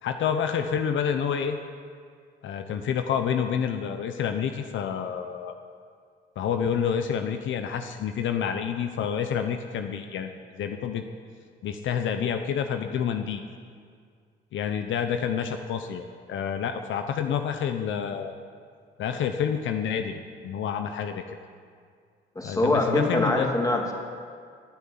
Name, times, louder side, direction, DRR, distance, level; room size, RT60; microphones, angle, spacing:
voice 1, 0.0-1.6 2.4-5.5 6.4-11.0 11.6-13.4 14.5-18.4 19.0-21.2 22.4-23.5, left 7 dB, 75° left, 7 dB, 0.9 m, -28 dB
voice 2, 22.3-23.9, left 2 dB, 15° left, 1 dB, 2.8 m, -24 dB
15.5 x 8.4 x 9.7 m, 2.1 s
cardioid pair, 90°, 20 cm